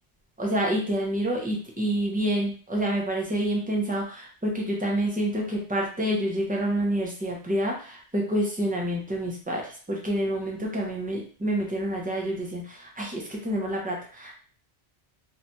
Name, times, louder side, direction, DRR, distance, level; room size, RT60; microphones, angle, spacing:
voice 1, 0.4-14.3, right 1 dB, 15° right, -1 dB, 0.3 m, -28 dB
3.1 x 2.2 x 2.6 m, 0.42 s
omnidirectional pair, 1.2 m